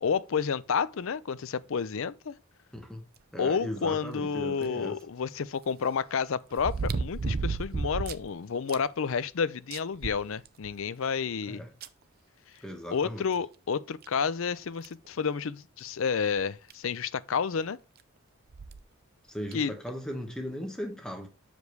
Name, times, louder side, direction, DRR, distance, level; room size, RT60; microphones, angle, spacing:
voice 1, 0.0-2.3 3.4-11.6 12.9-17.8 19.5-19.7, left 6 dB, 65° left, 0.5 m, -30 dB
voice 2, 2.7-3.0 3.3-5.0 11.5-11.7 12.6-13.3 19.3-21.3, equal, 5° left, 1.2 m, -37 dB
sound 1, 4.6-4.7 6.6-8.3 8.7-8.8 9.2-9.3 9.7-10.8 11.8-11.9 13.4-13.5 14.0-14.1 14.8-15.1 16.4-16.5 16.7-16.8 18.5-18.8 19.5-19.6, right 4 dB, 45° right, 0.5 m, -32 dB
6.5 x 5.2 x 4.6 m
head